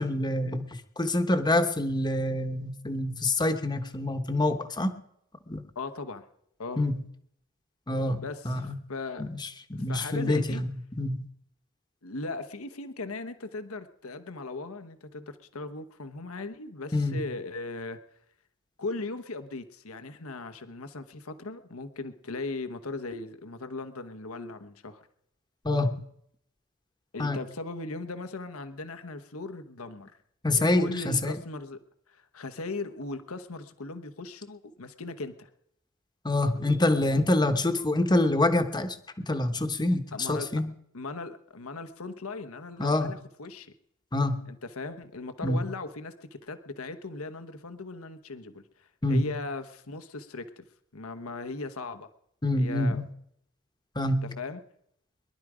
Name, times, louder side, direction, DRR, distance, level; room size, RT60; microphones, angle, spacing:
voice 1, 0.0-5.0 5.5-5.6 6.8-7.0 7.9-8.8 9.2-11.3 16.9-17.2 25.6-25.9 27.2-27.4 30.4-31.4 36.2-40.7 42.8-43.1 44.1-44.5 45.4-45.6 49.0-49.3 52.4-53.0 53.9-54.3, left 2 dB, 20° left, 8 dB, 1.1 m, -26 dB
voice 2, 5.7-6.2 6.6-6.8 8.2-9.3 9.7-10.6 12.0-18.0 18.8-25.0 27.1-30.1 30.6-31.8 32.1-35.5 40.1-40.5 40.9-43.7 44.5-50.6 50.9-52.1 52.5-53.0 54.2-54.6, left 3 dB, 80° left, 9 dB, 1.2 m, -38 dB
23.0 x 11.5 x 5.0 m, 0.74 s
head